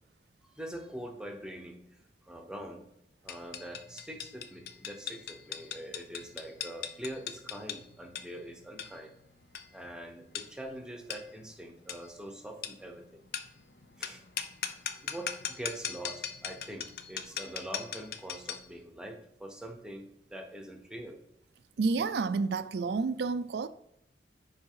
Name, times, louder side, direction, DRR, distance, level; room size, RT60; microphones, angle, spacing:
voice 1, 0.4-2.8 3.2-9.1 9.7-13.2 14.0-14.2 15.0-21.2, right 1 dB, 5° right, 0.9 m, -44 dB
sound 1, 3.3-18.7, left 8 dB, 60° left, 0.6 m, -40 dB
voice 2, 21.8-23.7, right 4 dB, 70° right, 0.4 m, -30 dB
5.3 x 4.8 x 5.6 m
head